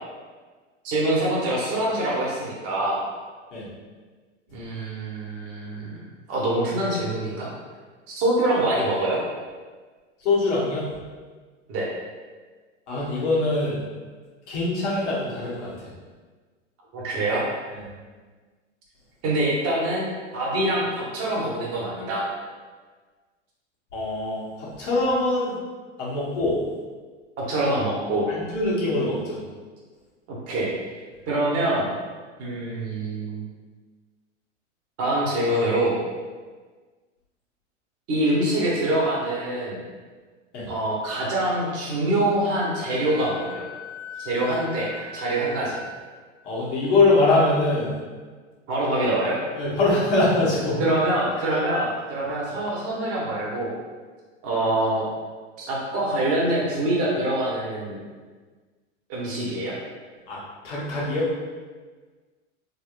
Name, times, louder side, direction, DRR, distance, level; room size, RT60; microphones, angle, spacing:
voice 1, 0.8-3.0 4.5-6.0 6.3-7.5 8.1-9.2 11.7-11.9 16.9-17.5 19.2-22.2 27.4-28.3 30.3-30.7 31.3-31.9 32.4-33.4 35.0-36.0 38.1-39.8 40.7-43.6 44.2-45.8 48.7-49.4 50.8-53.7 54.4-55.0 55.6-58.0 59.1-59.7, right 1 dB, 40° right, -5 dB, 1.2 m, -25 dB
voice 2, 10.2-10.9 12.9-13.8 14.5-15.9 17.7-17.8 23.9-25.6 26.0-26.6 28.3-29.4 40.5-40.7 46.4-47.9 49.5-50.8 51.5-51.6 60.3-61.3, left 2 dB, 70° left, -7 dB, 1.5 m, -23 dB
Wind instrument woodwind instrument, 42.6-46.1, left 5 dB, 55° right, 0.8 m, -40 dB
3.7 x 3.0 x 2.5 m, 1.4 s
hypercardioid pair, 95°, 37 cm